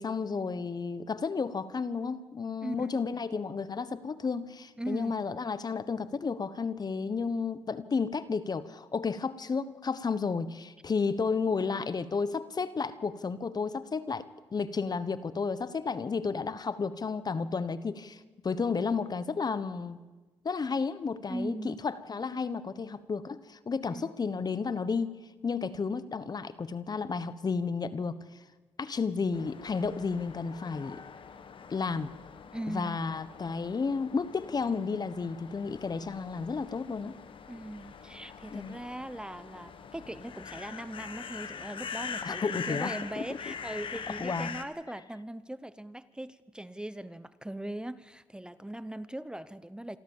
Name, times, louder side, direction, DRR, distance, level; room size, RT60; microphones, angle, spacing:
voice 1, 0.0-20.0 20.4-28.4 28.8-31.0 31.7-32.1 32.7-37.2 38.5-38.8 42.2-43.5 44.2-44.5, left 5 dB, 40° left, 15 dB, 1.1 m, -32 dB
voice 2, 4.8-5.2 21.3-21.8 23.9-24.1 32.5-33.0 37.5-50.0, right 1 dB, 10° right, 15 dB, 0.8 m, -39 dB
sound 1, 29.3-44.6, left 6 dB, 60° left, 1.5 m, -43 dB
26.5 x 13.5 x 7.4 m, 1.3 s
cardioid pair, 70°, 10 cm